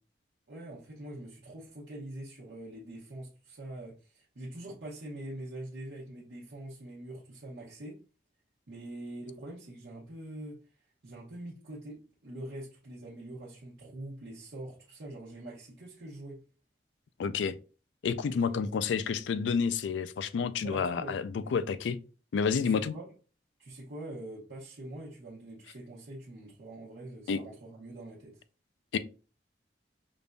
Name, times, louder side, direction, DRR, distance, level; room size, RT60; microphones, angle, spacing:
voice 1, 0.5-8.0 8.7-10.6 11.0-16.4 18.2-18.7 20.6-21.2 21.4-21.5 22.6-23.1 23.6-28.4, right 1 dB, 85° right, 1.0 m, -44 dB
voice 2, 17.2-17.6 18.0-22.0 22.3-22.9 27.3-27.4 28.9-29.0, left 6 dB, 85° left, 0.3 m, -29 dB
5.1 x 2.5 x 2.2 m
head